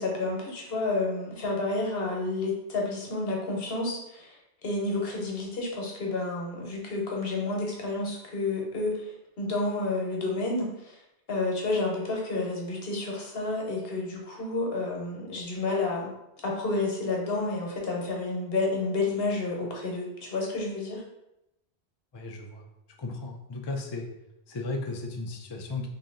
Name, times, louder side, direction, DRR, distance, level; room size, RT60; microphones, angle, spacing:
voice 1, 0.0-4.4 4.6-11.0 11.3-16.1 16.4-21.0, left 2 dB, 65° left, -1 dB, 1.1 m, -30 dB
voice 2, 22.1-22.6 23.0-24.1 24.5-25.9, left 3 dB, 45° left, 2 dB, 0.3 m, -35 dB
3.2 x 2.8 x 3.7 m, 0.86 s
omnidirectional pair, 1.1 m